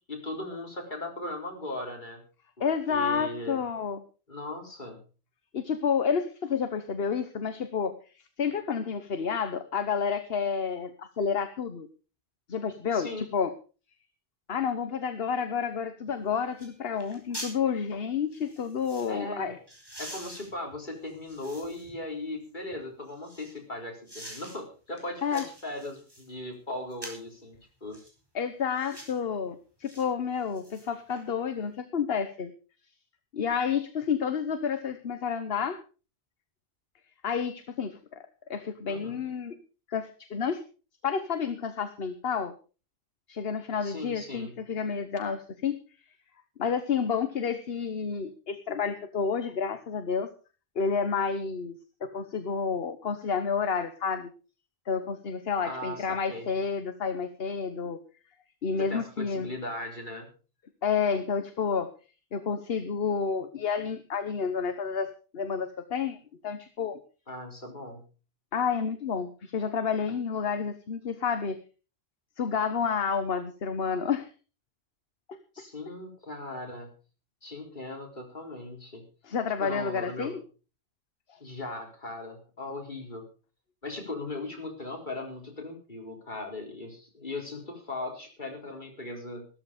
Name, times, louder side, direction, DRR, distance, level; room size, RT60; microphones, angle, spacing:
voice 1, 0.1-2.2 2.6-3.6 4.3-5.0 12.9-13.2 19.1-19.6 20.0-28.0 38.9-39.2 43.8-44.5 55.6-56.5 58.8-60.3 67.3-68.1 75.5-76.9 77.4-79.1 79.6-80.4 81.4-83.3 83.8-89.5, left 2 dB, 50° left, 2 dB, 4.4 m, -38 dB
voice 2, 2.6-4.0 5.5-8.0 8.4-11.9 12.5-13.5 14.5-19.6 25.2-25.4 28.3-32.5 33.3-35.8 37.2-38.2 38.5-39.6 39.9-40.6 41.0-42.5 43.3-45.8 46.6-50.3 50.7-54.3 54.9-58.0 58.6-59.5 60.8-61.9 62.3-66.2 66.4-67.0 68.5-71.6 72.4-74.3 79.2-80.4 81.3-81.4, left 6 dB, 70° left, 10 dB, 1.3 m, -30 dB
sound 1, 16.1-16.2 16.6-16.7 17.0-17.6 18.3-19.1 19.7-21.9 22.4-23.6 24.1-24.6 25.0-26.3 26.9-27.3 27.9-28.1 28.7-29.2 29.8-30.0 30.4-31.2 31.6-31.7, equal, 20° right, 5.0 m, -45 dB
14.0 x 13.5 x 5.0 m, 0.36 s
omnidirectional pair, 1.1 m